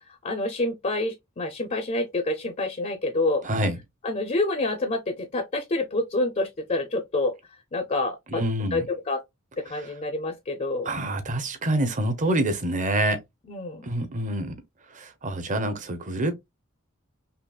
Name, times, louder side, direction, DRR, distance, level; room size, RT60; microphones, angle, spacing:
voice 1, 0.2-3.4 4.0-7.4 7.7-8.4 8.7-9.2 9.6-10.9 13.5-13.8, left 2 dB, 35° left, 0.5 m, -27 dB
voice 2, 3.4-3.8 8.3-8.9 10.8-13.2 13.8-14.5 14.9-16.3, right 1 dB, 35° right, 0.8 m, -26 dB
5.5 x 2.0 x 2.3 m
head